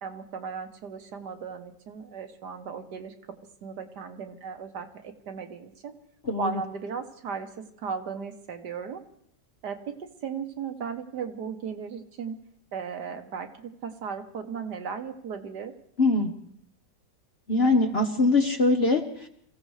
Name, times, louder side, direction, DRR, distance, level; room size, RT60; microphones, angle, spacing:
voice 1, 0.0-3.1 3.6-5.9 6.4-9.0 9.6-12.4 12.7-15.7, right 6 dB, 65° right, 6 dB, 1.6 m, -36 dB
voice 2, 6.3-6.6 16.0-16.3 17.5-19.3, left 2 dB, 40° left, 4 dB, 1.1 m, -22 dB
28.0 x 15.5 x 3.3 m, 0.67 s
omnidirectional pair, 2.0 m